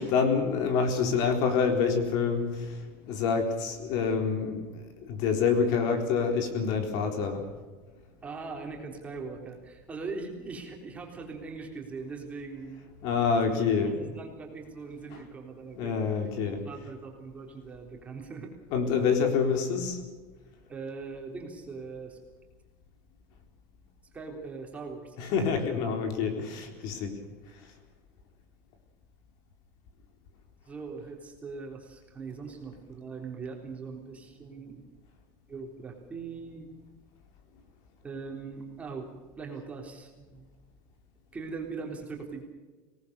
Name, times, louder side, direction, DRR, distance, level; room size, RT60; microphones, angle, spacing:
voice 1, 0.0-7.4 13.0-14.1 15.1-15.2 15.8-16.6 18.7-20.0 25.2-27.2, left 5 dB, 55° left, 5 dB, 4.2 m, -27 dB
voice 2, 8.2-12.9 13.8-15.9 16.6-18.5 20.7-22.2 24.1-25.2 30.7-34.8 35.5-36.7 38.0-39.1 39.4-40.5 41.3-42.4, right 4 dB, 15° right, 1 dB, 3.6 m, -40 dB
26.0 x 19.0 x 6.8 m, 1.3 s
supercardioid pair, 155°, 8 cm